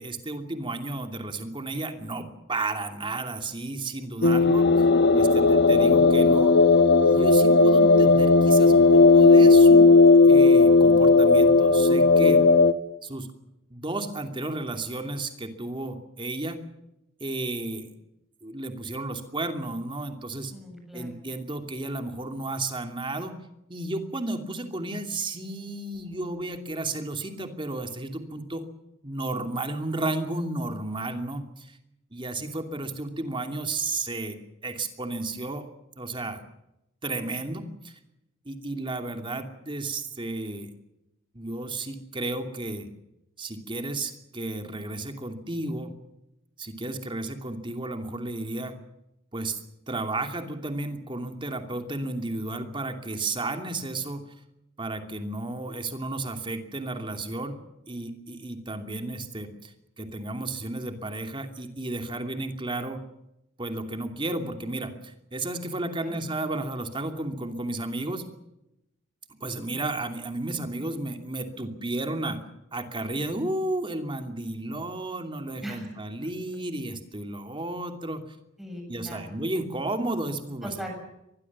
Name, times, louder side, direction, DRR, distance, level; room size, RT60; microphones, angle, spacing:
voice 1, 0.0-4.7 5.1-6.5 7.0-9.9 10.3-12.4 13.0-13.3 13.7-16.6 17.2-17.9 18.4-20.5 20.9-23.4 23.7-28.7 29.0-31.7 32.1-34.4 34.6-35.7 36.0-36.4 37.0-37.9 38.5-40.7 41.3-42.9 43.4-45.9 46.6-48.8 49.3-49.6 49.9-54.3 54.8-59.7 60.0-63.0 63.6-68.2 69.3-72.4 72.7-78.2 78.9-80.7, right 2 dB, 25° right, 6 dB, 2.7 m, -33 dB
sound 1, 4.2-12.7, left 3 dB, 60° left, 1.1 m, -16 dB
voice 2, 20.5-21.2 66.0-66.2 75.6-76.0 78.6-79.3 80.6-80.9, equal, ahead, 1 dB, 7.2 m, -39 dB
24.5 x 20.5 x 7.4 m, 0.86 s
head